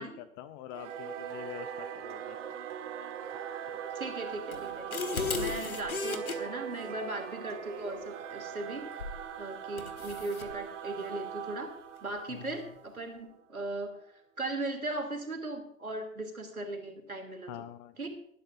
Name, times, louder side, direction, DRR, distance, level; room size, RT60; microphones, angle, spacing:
voice 1, 0.4-2.4 12.3-12.6 17.5-18.1, left 12 dB, 20° left, 13 dB, 0.3 m, -45 dB
Singing / Musical instrument, 0.7-13.6, right 8 dB, 55° right, 1.8 m, -41 dB
voice 2, 3.9-11.7 12.0-17.6 18.0-18.1, right 2 dB, 85° right, 4 dB, 3.0 m, -38 dB
sound 1, 4.5-6.4 9.0-9.2 9.8-10.5, left 4 dB, 80° left, 1.8 m, -35 dB
20.0 x 12.5 x 2.6 m, 0.70 s
figure-of-eight pair, 95°, 42 cm